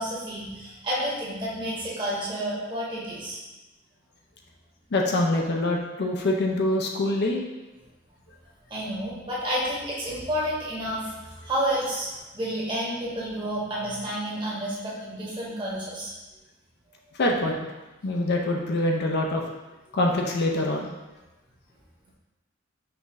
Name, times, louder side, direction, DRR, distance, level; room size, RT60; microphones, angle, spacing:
voice 1, 0.0-3.4 8.7-16.1, equal, 25° right, -7 dB, 1.2 m, -30 dB
voice 2, 4.9-7.4 17.2-17.6 18.0-19.4 19.9-20.9, left 1 dB, 55° left, 0 dB, 0.5 m, -24 dB
5.4 x 2.5 x 3.1 m, 1.1 s
head